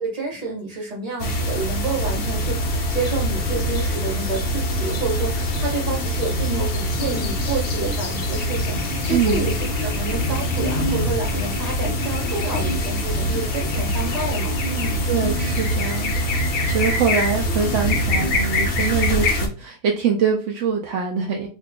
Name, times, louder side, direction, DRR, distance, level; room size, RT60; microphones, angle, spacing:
voice 1, 0.0-15.0, right 3 dB, 25° right, -3 dB, 1.1 m, -29 dB
sound 1, 1.2-19.5, left 1 dB, 65° left, 0.5 m, -23 dB
voice 2, 9.1-9.5 15.0-21.5, right 7 dB, 75° right, 1 dB, 0.6 m, -24 dB
2.8 x 2.4 x 3.4 m, 0.33 s
omnidirectional pair, 1.8 m